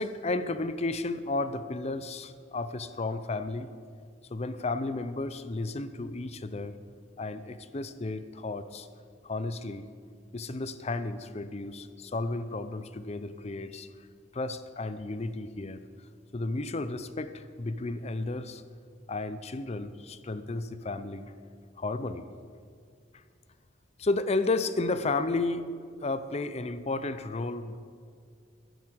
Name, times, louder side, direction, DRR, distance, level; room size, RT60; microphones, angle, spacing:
voice 1, 0.0-3.7 4.3-6.8 7.2-8.9 9.2-9.9 10.3-13.9 14.3-15.8 16.3-18.6 19.1-21.3 21.8-22.3 24.0-25.7 26.0-27.8, left 2 dB, 35° left, 12 dB, 0.6 m, -33 dB
11.0 x 10.5 x 7.8 m, 2.1 s
head